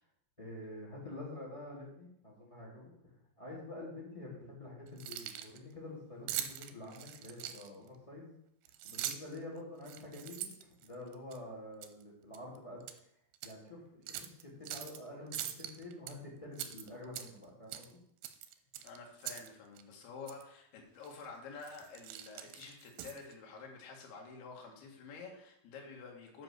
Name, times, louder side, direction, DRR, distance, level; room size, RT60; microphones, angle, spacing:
voice 1, 0.4-2.9 3.4-8.3 8.8-10.5 10.8-12.8 13.4-13.8 14.0-18.0, left 2 dB, 10° left, -3 dB, 1.6 m, -47 dB
Keys jangling, 4.9-5.6 6.3-7.9 8.7-9.4 9.8-11.4 11.8-12.0 12.3-13.0 13.3-13.5 14.1-15.0 15.3-16.1 16.5-17.5 17.7-17.9 18.2-19.5 19.8-19.9 20.3-20.4 21.0-21.3 21.6-23.3, right 12 dB, 85° right, 2.7 m, -42 dB
voice 2, 18.8-26.4, left 4 dB, 70° left, 0 dB, 3.4 m, -49 dB
8.7 x 5.3 x 6.6 m, 0.73 s
omnidirectional pair, 4.9 m